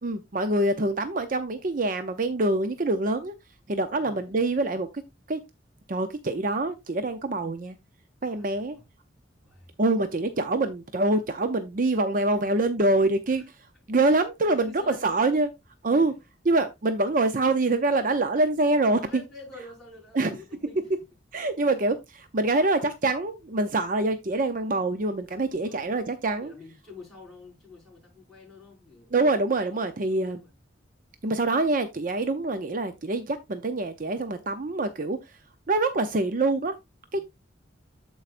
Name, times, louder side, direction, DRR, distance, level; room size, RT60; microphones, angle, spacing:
voice 1, 0.0-3.3 3.7-4.9 5.3-5.4 5.9-7.8 8.2-8.8 9.8-13.4 13.9-15.5 15.8-16.1 16.5-19.2 20.1-20.3 21.3-26.5 29.1-30.4 31.2-35.4 35.7-36.7 37.1-37.2, right 2 dB, 45° right, 0.6 m, -25 dB
voice 2, 3.9-4.4 8.3-8.9 9.4-9.7 13.3-13.5 14.4-15.2 15.9-16.2 19.0-20.9 21.4-21.5 25.6-25.9 26.4-29.2 29.6-30.5 37.1-37.2, left 3 dB, ahead, 5.5 m, -48 dB
13.5 x 4.7 x 2.5 m
head